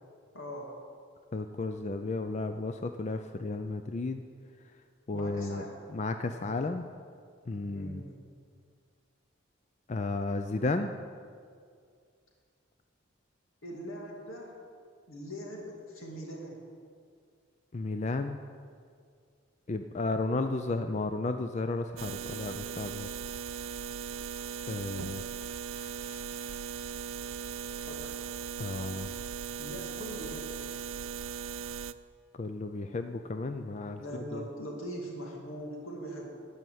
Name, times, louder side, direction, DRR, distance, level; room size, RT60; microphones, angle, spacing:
voice 1, 0.3-0.8 5.1-5.9 7.7-8.2 13.6-14.6 15.1-16.6 27.8-28.2 29.6-30.7 34.0-36.4, equal, 85° left, -1 dB, 2.2 m, -41 dB
voice 2, 1.3-4.2 5.1-5.6 5.9-6.9 7.5-8.0 9.9-10.9 17.7-18.4 19.7-23.1 24.7-25.2 25.5-26.6 28.6-29.1 32.4-34.0 34.3-34.4, left 3 dB, 35° left, 7 dB, 0.4 m, -33 dB
sound 1, 22.0-31.9, right 7 dB, 80° right, 0.4 m, -38 dB
14.0 x 5.6 x 9.1 m, 2.2 s
head